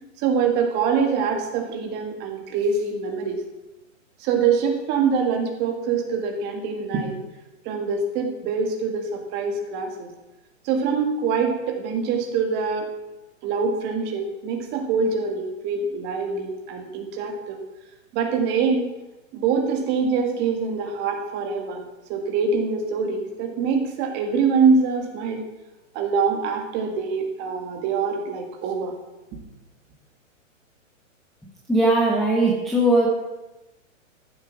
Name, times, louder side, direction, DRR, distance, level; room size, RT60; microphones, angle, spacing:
voice 1, 0.2-3.4 4.2-7.1 7.7-10.1 10.6-12.9 13.4-17.6 18.1-18.9 19.3-21.8 22.1-25.4 25.9-29.0, right 5 dB, 25° right, 3 dB, 1.9 m, -24 dB
voice 2, 31.7-33.1, right 1 dB, ahead, -3 dB, 0.5 m, -19 dB
14.0 x 7.9 x 6.0 m, 1.0 s
hypercardioid pair, 155°, 40 cm